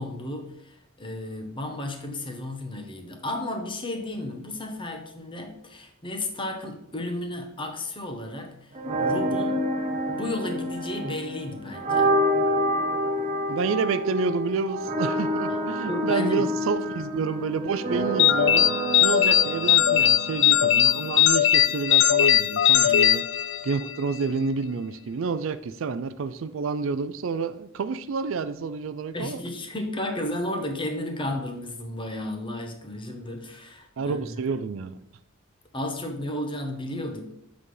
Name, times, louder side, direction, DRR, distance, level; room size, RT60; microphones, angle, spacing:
voice 1, 0.0-9.7 10.1-12.1 15.8-16.5 22.8-22.9 29.1-34.4 35.7-37.3, left 1 dB, 25° left, 4 dB, 1.1 m, -33 dB
sound 1, 8.7-21.7, equal, 30° right, 0.9 m, -28 dB
voice 2, 13.5-18.7 19.0-23.2 23.6-29.4 34.0-35.0, right 5 dB, 65° right, 12 dB, 0.4 m, -29 dB
sound 2, 18.2-24.0, left 11 dB, 60° left, 0.4 m, -20 dB
7.6 x 4.1 x 4.8 m, 0.78 s
head